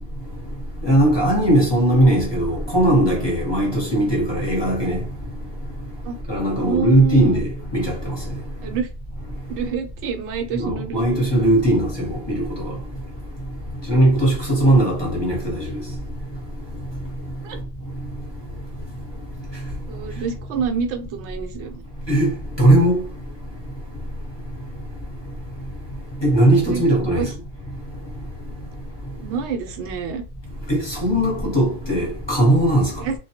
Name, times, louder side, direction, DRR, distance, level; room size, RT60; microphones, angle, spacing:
voice 1, 0.9-5.0 6.3-7.9 10.5-12.7 13.9-15.7 22.1-22.3 22.6-23.0 26.2-27.3 30.7-32.9, right 1 dB, 25° left, 0.8 m, -18 dB
voice 2, 6.6-7.4 8.6-8.9 9.5-11.3 17.4-17.6 19.9-21.8 26.6-26.8 27.1-27.3 29.2-30.2 33.0-33.1, right 6 dB, 65° right, 0.8 m, -27 dB
2.3 x 2.1 x 2.7 m
omnidirectional pair, 1.4 m